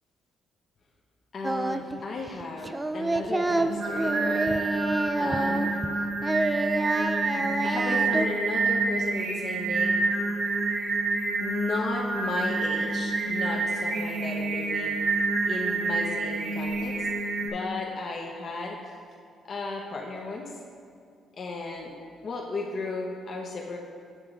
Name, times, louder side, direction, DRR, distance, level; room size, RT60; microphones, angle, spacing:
voice 1, 1.3-4.6 5.2-5.7 7.3-10.0 11.4-15.0 15.5-17.1 17.4-18.8 19.4-20.6 21.4-21.9 22.2-23.8, left 3 dB, 50° left, -1 dB, 0.8 m, -35 dB
Singing, 1.4-2.0 2.3-5.9 6.2-8.3, right 2 dB, 15° right, 0.3 m, -28 dB
Singing 2, 3.5-17.5, right 3 dB, 65° right, 1.1 m, -28 dB
7.7 x 6.6 x 3.7 m, 2.3 s
cardioid pair, 90°, 0 cm